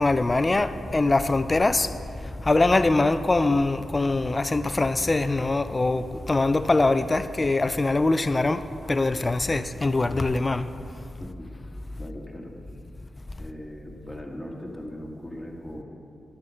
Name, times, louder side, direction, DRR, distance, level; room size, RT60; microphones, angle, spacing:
voice 1, 0.0-1.9 2.2-10.7, left 2 dB, 25° left, 0.4 m, -23 dB
voice 2, 12.0-12.5 13.4-15.8, left 1 dB, 5° left, 1.9 m, -39 dB
11.5 x 8.2 x 6.4 m
cardioid pair, 95°, 0 cm